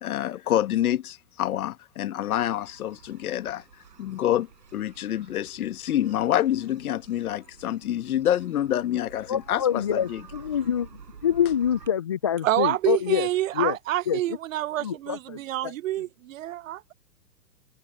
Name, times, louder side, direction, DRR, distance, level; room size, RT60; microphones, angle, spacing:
voice 1, 0.0-3.6 4.0-10.2, left 12 dB, 60° left, 1.7 m, -27 dB
sound 1, 2.3-11.9, right 6 dB, 75° right, 6.3 m, -50 dB
voice 2, 9.3-10.9 11.2-13.3 13.5-13.8 14.1-14.2 14.8-15.4 15.6-15.7, left 9 dB, 20° left, 0.3 m, -25 dB
voice 3, 12.4-16.9, right 14 dB, 50° right, 1.0 m, -27 dB
figure-of-eight pair, 115°, 50 cm